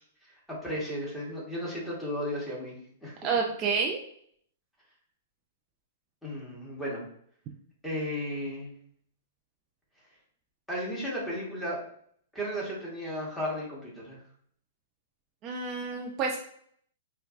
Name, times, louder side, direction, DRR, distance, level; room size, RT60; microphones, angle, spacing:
voice 1, 0.0-3.2 6.2-7.0 7.8-8.7 10.7-11.8 12.3-14.2, equal, 5° left, -5 dB, 1.3 m, -35 dB
voice 2, 3.2-4.0 15.4-16.4, right 5 dB, 35° right, 1 dB, 0.4 m, -29 dB
4.5 x 2.2 x 2.5 m, 0.63 s
hypercardioid pair, 130°, 0 cm